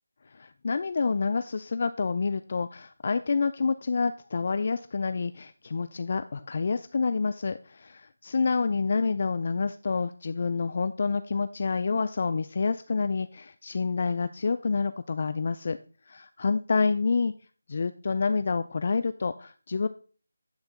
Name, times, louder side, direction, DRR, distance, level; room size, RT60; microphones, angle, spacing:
voice 1, 0.3-15.8 16.1-17.3 17.7-19.9, left 4 dB, 45° left, 12 dB, 0.3 m, -28 dB
8.5 x 4.6 x 3.8 m, 0.40 s
figure-of-eight pair, 165°, 0 cm